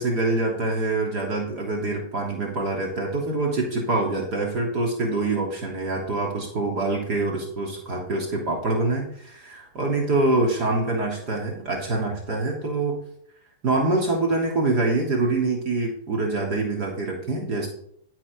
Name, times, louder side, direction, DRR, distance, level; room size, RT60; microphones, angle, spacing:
voice 1, 0.0-12.9 13.6-17.7, right 2 dB, 45° right, 0 dB, 2.7 m, -25 dB
12.5 x 4.4 x 5.1 m, 0.67 s
hypercardioid pair, 115°, 0 cm